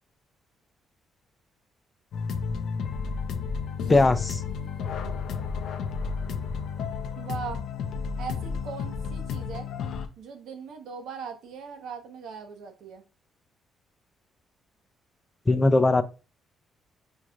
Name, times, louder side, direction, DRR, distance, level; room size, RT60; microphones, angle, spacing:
sound 1, 2.1-10.1, left 5 dB, 70° left, 0.5 m, -32 dB
voice 1, 3.9-4.4 15.5-16.0, left 2 dB, 25° left, 11 dB, 0.4 m, -20 dB
voice 2, 7.2-7.6 8.2-9.7 10.2-13.0, right 6 dB, 80° right, 5 dB, 0.9 m, -39 dB
5.3 x 3.1 x 2.4 m, 0.31 s
cardioid pair, 90°, 0 cm